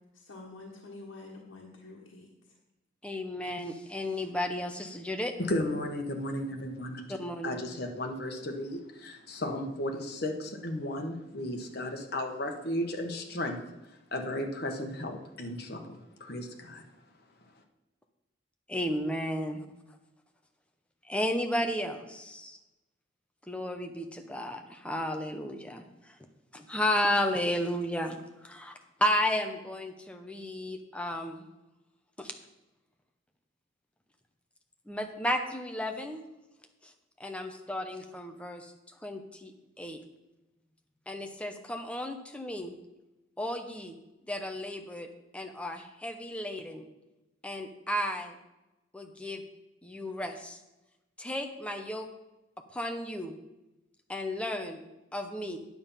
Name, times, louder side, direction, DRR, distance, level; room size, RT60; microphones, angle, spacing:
voice 1, 0.1-2.3, left 2 dB, 80° left, -3 dB, 1.5 m, -47 dB
voice 2, 3.0-5.3 7.1-7.6 18.7-19.6 21.1-22.6 23.5-26.1 26.5-28.2 28.4-31.5 32.2-32.3 34.9-36.2 36.8-36.9 37.2-38.7 39.0-40.0 41.1-42.8 43.4-43.9 44.3-45.1 45.3-46.8 47.4-48.3 48.9-49.4 49.8-50.6 51.2-52.1 52.7-53.4 54.1-54.8 55.1-55.6, left 1 dB, 5° left, 4 dB, 0.8 m, -33 dB
voice 3, 5.4-7.2 7.4-13.6 14.1-15.9 16.2-16.8, left 1 dB, 55° left, 3 dB, 1.3 m, -34 dB
9.5 x 7.0 x 5.6 m, 0.99 s
head